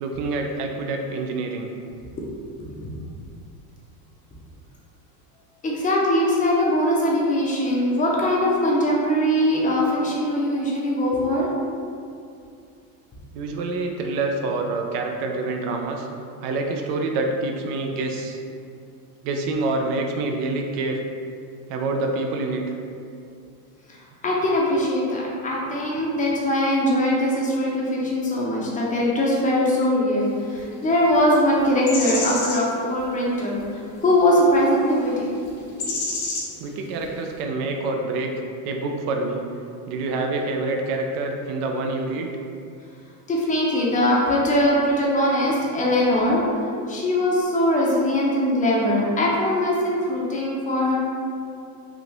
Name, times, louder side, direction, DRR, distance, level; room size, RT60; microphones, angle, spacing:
voice 1, 0.0-1.7 13.3-16.1 16.4-18.4 19.2-21.0 21.7-22.6 36.6-38.3 38.6-39.4 39.9-42.3, right 3 dB, 80° right, 3 dB, 0.6 m, -26 dB
voice 2, 5.6-11.5 23.9-35.3 35.7-36.0 36.6-36.7 43.3-46.4 46.9-51.0, left 1 dB, 20° left, -4 dB, 0.5 m, -21 dB
sound 1, 30.9-31.2 31.9-32.6 33.6-33.7 34.5-34.6 34.9-35.2 35.8-36.5 37.0-37.1, left 3 dB, 85° left, 1.2 m, -28 dB
3.5 x 2.5 x 2.9 m, 2.4 s
supercardioid pair, 125°, 46 cm